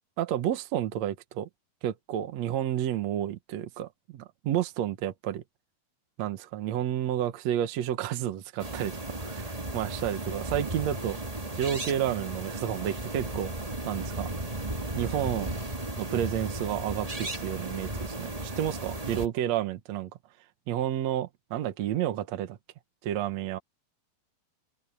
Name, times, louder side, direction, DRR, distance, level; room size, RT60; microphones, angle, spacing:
voice 1, 0.2-1.5 1.8-5.4 6.2-8.9 9.2-11.2 11.5-14.3 15.0-15.5 16.0-20.1 20.7-22.6 23.0-23.6, right 11 dB, 70° right, 1.6 m, -31 dB
sound 1, 8.6-19.3, right 2 dB, 55° right, 0.4 m, -35 dB
open air
omnidirectional pair, 4.8 m